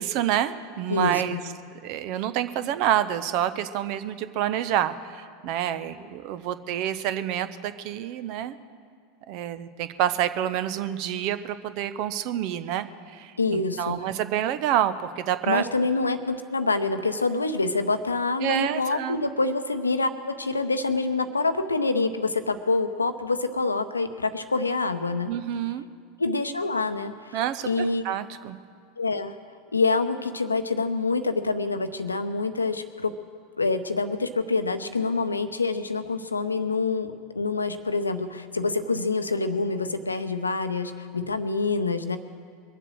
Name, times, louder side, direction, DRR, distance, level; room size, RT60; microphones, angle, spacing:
voice 1, 0.0-1.4 1.8-8.6 9.3-15.6 18.4-19.2 25.3-25.9 27.3-28.6, right 11 dB, 50° right, 13 dB, 0.7 m, -28 dB
voice 2, 0.9-1.4 13.4-14.0 15.5-25.3 26.2-27.4 27.6-28.0 29.0-29.3 29.7-33.1 33.6-42.2, left 3 dB, 80° left, 10 dB, 0.7 m, -26 dB
22.5 x 7.7 x 6.4 m, 2.2 s
figure-of-eight pair, 80°, 0 cm